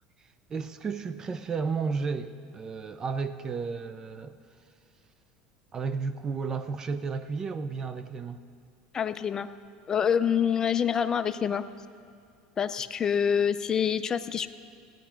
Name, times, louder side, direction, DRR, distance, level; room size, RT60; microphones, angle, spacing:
voice 1, 0.5-4.3 5.7-8.4, right 5 dB, 30° right, 11 dB, 0.5 m, -33 dB
voice 2, 8.9-9.5 9.9-11.6 12.6-14.5, left 8 dB, 30° left, 12 dB, 0.4 m, -26 dB
15.5 x 9.1 x 4.4 m, 2.4 s
supercardioid pair, 115°, 2 cm